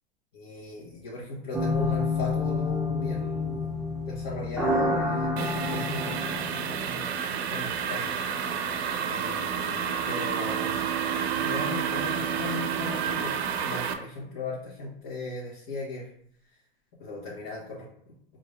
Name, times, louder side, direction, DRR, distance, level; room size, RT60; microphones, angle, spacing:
voice 1, 0.3-3.8 4.1-7.0 7.5-8.1 9.0-13.3 13.6-16.1 17.0-17.9, left 3 dB, 45° left, -8 dB, 1.4 m, -37 dB
sound 1, 1.5-6.9, left 2 dB, ahead, 0.7 m, -29 dB
sound 2, 5.4-13.9, right 7 dB, 85° right, 0.7 m, -30 dB
Bowed string instrument, 9.6-14.2, right 15 dB, 45° right, 0.4 m, -35 dB
4.9 x 2.6 x 3.4 m, 0.66 s
supercardioid pair, 140°, 31 cm